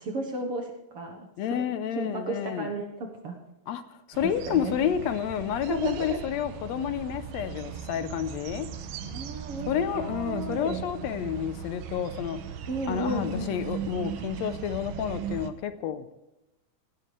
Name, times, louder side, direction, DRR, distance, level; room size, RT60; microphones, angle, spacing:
voice 1, 0.0-1.6 1.9-3.4 4.2-4.8 5.7-6.2 9.0-10.8 12.7-13.7, right 2 dB, 55° right, 2 dB, 2.0 m, -34 dB
voice 2, 1.4-2.7 3.7-3.8 4.1-8.7 9.7-12.4 12.9-16.1, left 9 dB, 70° left, 11 dB, 1.8 m, -30 dB
sound 1, 4.1-15.5, right 8 dB, 80° right, 2.4 m, -38 dB
18.5 x 15.5 x 3.3 m, 0.94 s
omnidirectional pair, 3.6 m